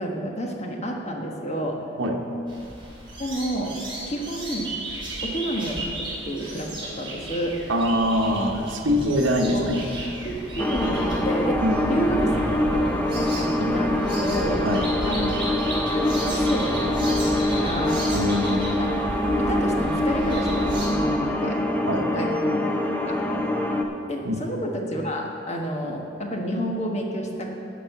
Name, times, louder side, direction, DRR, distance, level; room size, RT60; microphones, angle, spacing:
voice 1, 0.0-1.8 3.2-3.7 4.1-4.7 5.2-7.6 9.4-9.7 10.2-12.4 12.7-12.8 13.1-14.6 15.1-18.0 18.8-18.9 19.4-21.6 22.1-22.6 23.0-23.2 24.1-27.6, equal, 35° left, 0 dB, 1.3 m, -30 dB
sound 1, 2.5-20.9, right 1 dB, 25° right, 2.9 m, -34 dB
voice 2, 7.7-9.8 11.6-12.0 14.6-14.9 18.1-18.7 21.9-22.1 24.2-24.4, equal, 80° right, 1 dB, 1.1 m, -23 dB
sound 2, 10.6-23.8, left 1 dB, 10° left, 0.7 m, -24 dB
11.5 x 5.5 x 8.1 m, 2.6 s
head